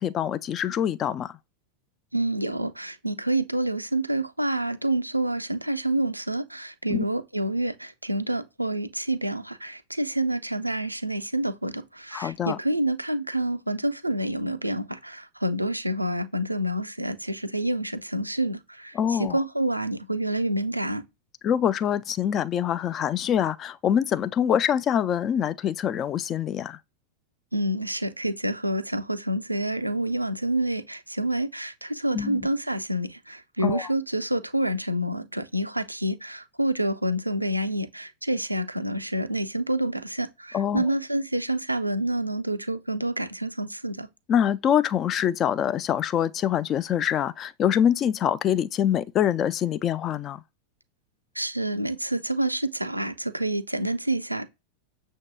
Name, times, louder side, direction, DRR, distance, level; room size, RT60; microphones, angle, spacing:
voice 1, 0.0-1.3 6.9-7.0 12.1-12.6 19.0-19.4 21.4-26.8 32.1-32.5 33.6-33.9 40.5-40.8 44.3-50.4, left 9 dB, 30° left, 0.3 m, -25 dB
voice 2, 2.1-21.0 27.5-44.1 51.3-54.5, right 1 dB, 85° right, 0.4 m, -28 dB
6.4 x 2.6 x 2.3 m
figure-of-eight pair, 90°, 0 cm